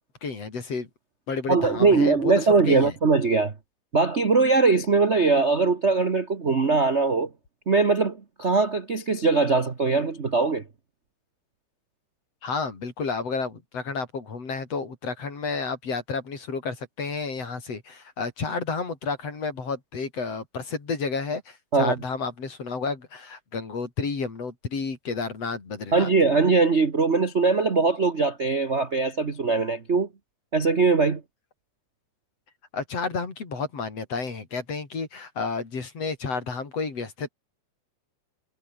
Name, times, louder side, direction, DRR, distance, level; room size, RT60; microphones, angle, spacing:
voice 1, 0.2-0.9 1.3-2.9 12.4-26.1 32.7-37.3, left 4 dB, 50° left, 5.3 m, -31 dB
voice 2, 1.5-3.5 3.9-7.3 7.7-10.6 21.7-21.9 25.9-30.1 30.5-31.2, right 4 dB, 40° right, 0.9 m, -21 dB
omnidirectional pair, 3.7 m